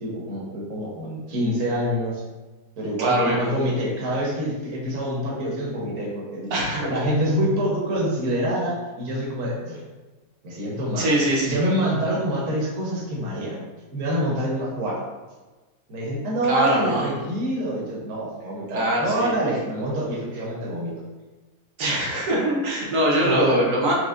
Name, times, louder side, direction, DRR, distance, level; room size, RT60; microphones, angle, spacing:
voice 1, 0.0-2.2 2.8-6.5 6.9-9.8 10.4-11.2 11.4-13.6 13.9-15.0 15.9-20.9 22.0-22.1 23.2-23.6, equal, 60° right, -4 dB, 1.3 m, -26 dB
voice 2, 3.0-3.4 6.5-7.0 11.0-11.6 16.5-17.1 18.7-19.3 21.8-23.9, right 1 dB, 80° right, -4 dB, 1.5 m, -22 dB
5.2 x 2.9 x 2.5 m, 1.2 s
omnidirectional pair, 1.7 m